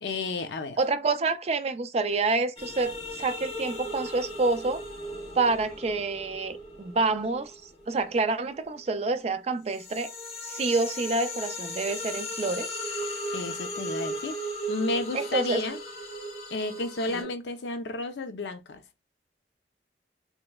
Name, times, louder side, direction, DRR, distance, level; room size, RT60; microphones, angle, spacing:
voice 1, 0.0-0.8 13.3-14.4 14.7-15.8 16.5-18.8, left 2 dB, 80° left, 0.6 m, -32 dB
voice 2, 0.8-4.8 5.4-10.1 10.5-12.7 15.1-15.6 17.1-17.3, right 3 dB, 35° right, 0.3 m, -28 dB
sound 1, 2.6-8.9 9.4-17.2, equal, 35° left, 0.9 m, -37 dB
3.2 x 2.9 x 2.2 m
head